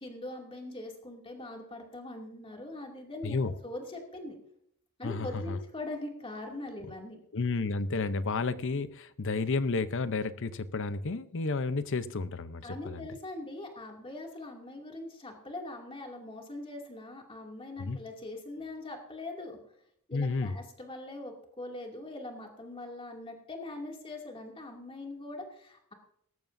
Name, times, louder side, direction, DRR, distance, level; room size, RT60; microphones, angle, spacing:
voice 1, 0.0-4.4 5.0-7.2 12.6-19.6 20.1-25.9, left 2 dB, 25° left, 1 dB, 2.5 m, -42 dB
voice 2, 3.2-3.5 5.0-5.6 7.3-13.1 17.8-18.0 20.1-20.6, left 3 dB, 60° left, 13 dB, 0.7 m, -31 dB
18.0 x 14.0 x 2.7 m, 0.70 s
head